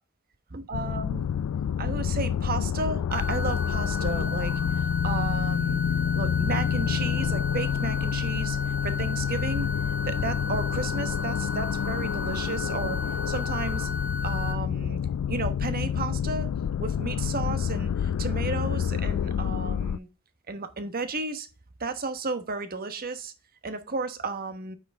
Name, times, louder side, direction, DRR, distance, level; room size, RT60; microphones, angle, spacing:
voice 1, 0.5-1.3 1.8-5.8 6.1-8.6 8.8-9.7 10.0-13.0 13.3-13.9 14.2-15.0 15.3-16.5 16.8-20.1 20.5-21.5 21.8-23.3 23.6-24.8, right 3 dB, 45° right, 1.2 m, -33 dB
sound 1, 0.7-20.0, left 8 dB, 75° left, 0.3 m, -28 dB
sound 2, 3.1-14.5, left 2 dB, 5° right, 2.5 m, -35 dB
9.4 x 6.0 x 3.5 m
head